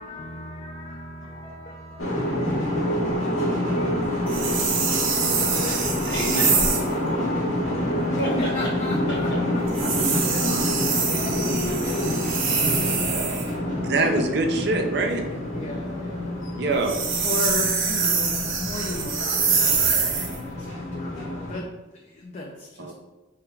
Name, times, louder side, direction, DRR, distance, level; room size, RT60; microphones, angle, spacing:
voice 1, 0.0-5.1 8.4-11.1 12.1-14.4 15.5-16.3 17.2-22.9, left 2 dB, 35° left, -2 dB, 0.4 m, -37 dB
sound 1, 2.0-21.6, left 1 dB, 85° left, 1.4 m, -27 dB
sound 2, 4.3-6.9 9.7-13.5 16.7-20.4, right 5 dB, 80° right, 0.9 m, -25 dB
voice 2, 5.5-6.9 8.2-8.7 9.1-9.4, right 1 dB, 60° left, -2 dB, 1.4 m, -31 dB
voice 3, 13.9-15.2 16.5-17.1 22.8-22.9, right 3 dB, 55° right, 4 dB, 0.5 m, -24 dB
3.4 x 3.2 x 4.6 m, 1.1 s
head